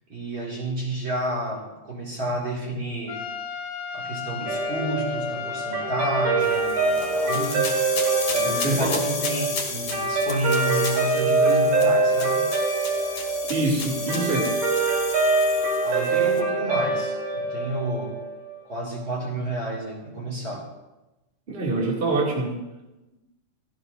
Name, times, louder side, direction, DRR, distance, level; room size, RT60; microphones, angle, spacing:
voice 1, 0.1-3.2 3.9-7.8 8.3-12.4 15.8-18.2 18.7-20.7, right 1 dB, 35° right, -3 dB, 2.7 m, -30 dB
Trumpet, 3.1-7.7, left 6 dB, 65° left, 2.2 m, -35 dB
Guitar, 4.5-19.0, right 3 dB, 60° right, 5.2 m, -24 dB
sound 1, 6.4-16.4, left 4 dB, 50° left, 2.7 m, -34 dB
voice 2, 8.4-8.9 13.5-14.5 21.5-22.6, right 2 dB, 20° right, -4 dB, 1.9 m, -25 dB
17.0 x 15.5 x 2.6 m, 1.0 s
omnidirectional pair, 4.4 m